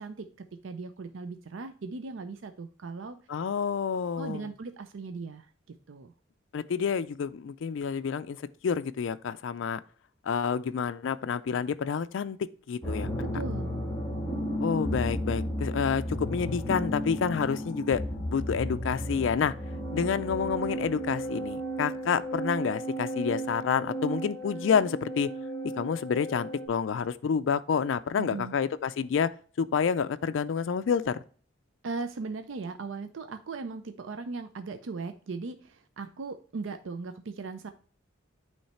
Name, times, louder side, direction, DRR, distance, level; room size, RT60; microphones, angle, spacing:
voice 1, 0.0-3.2 4.2-6.1 13.2-13.7 20.0-20.1 28.2-28.6 31.8-37.7, right 4 dB, 70° right, 0.5 m, -38 dB
voice 2, 3.3-4.5 6.5-9.8 10.2-12.4 12.7-13.1 14.6-18.0 18.3-19.5 19.9-25.3 25.6-29.3 29.6-31.2, left 6 dB, 65° left, 0.4 m, -29 dB
sound 1, 12.8-26.7, equal, 10° left, 1.6 m, -34 dB
8.7 x 3.2 x 4.2 m
head